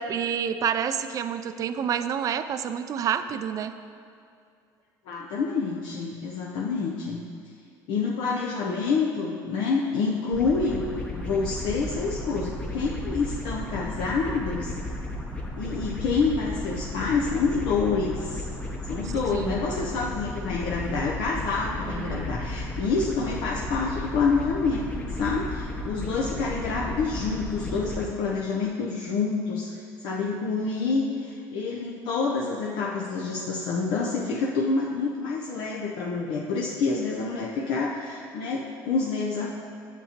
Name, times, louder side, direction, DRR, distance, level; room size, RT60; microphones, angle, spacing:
voice 1, 0.0-3.7 19.3-19.7 21.9-22.2, right 8 dB, 40° right, 11 dB, 0.3 m, -28 dB
voice 2, 5.1-7.2 7.9-14.8 15.6-18.5 18.9-24.8 25.1-39.5, left 4 dB, 70° left, -2 dB, 0.6 m, -27 dB
sound 1, 10.3-28.0, left 1 dB, 15° left, 0.7 m, -34 dB
8.3 x 6.8 x 2.9 m, 2.4 s
cardioid pair, 110°, 9 cm